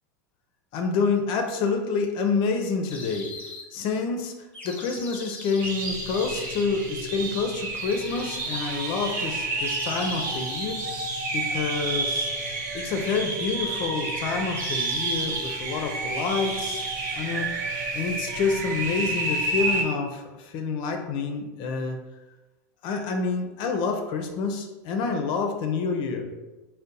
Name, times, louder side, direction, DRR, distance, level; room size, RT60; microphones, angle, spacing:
voice 1, 0.7-3.3 3.7-4.3 4.6-10.8 11.3-12.3 12.7-16.8 17.2-17.5 17.9-22.0 22.8-26.3, left 4 dB, 50° left, 4 dB, 0.4 m, -28 dB
sound 1, 2.9-3.7 4.5-6.7 7.7-8.7 9.6-10.9 12.4-14.2 14.5-15.6 15.8-17.3, left 2 dB, 15° left, 0.7 m, -41 dB
sound 2, 5.6-19.8, right 3 dB, 70° right, 0.8 m, -30 dB
2.6 x 2.0 x 3.8 m, 1.1 s
hypercardioid pair, 110°, 10 cm